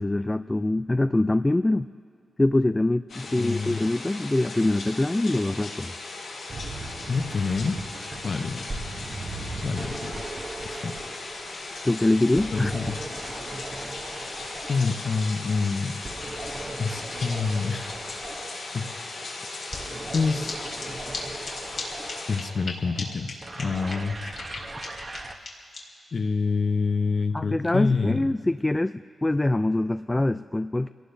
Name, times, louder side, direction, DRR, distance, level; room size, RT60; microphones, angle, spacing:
voice 1, 0.0-1.9 2.4-5.9 11.8-12.7 27.3-30.9, left 2 dB, 15° left, 10 dB, 0.3 m, -24 dB
sound 1, 3.1-22.4, left 3 dB, 90° left, 5.6 m, -38 dB
voice 2, 3.3-3.8 7.1-7.8 8.2-8.6 9.6-10.1 10.7-10.9 12.5-13.0 14.7-15.9 16.8-18.0 18.7-19.3 20.1-20.6 22.3-24.2 26.1-28.3, left 4 dB, 50° left, 7 dB, 0.8 m, -27 dB
sound 2, 6.5-25.3, right 2 dB, 30° right, 1.0 m, -39 dB
sound 3, 19.7-19.8 20.1-20.2 20.5-20.6 20.8-20.9 21.1-21.2 21.4-21.5 21.8-21.9 22.1-22.7 23.0-23.1 23.3-23.4 23.6-25.8, left 4 dB, 75° left, 2.9 m, -35 dB
30.0 x 18.0 x 2.7 m, 2.3 s
wide cardioid pair, 105°, 0 cm